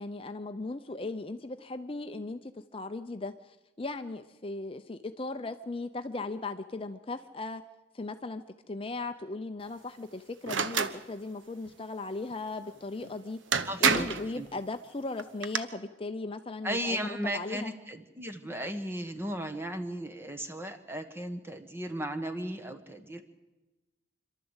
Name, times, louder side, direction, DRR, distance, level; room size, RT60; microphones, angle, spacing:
voice 1, 0.0-7.6 7.9-13.4 13.8-17.7, left 3 dB, 30° left, 9 dB, 0.6 m, -37 dB
sound 1, 10.5-11.0 13.0-13.1 13.5-14.3 15.2-15.6, right 6 dB, 80° right, 1.0 m, -27 dB
voice 2, 13.7-14.1 14.4-14.5 16.6-23.2, equal, 10° right, 8 dB, 1.2 m, -35 dB
26.5 x 12.5 x 8.1 m, 1.1 s
head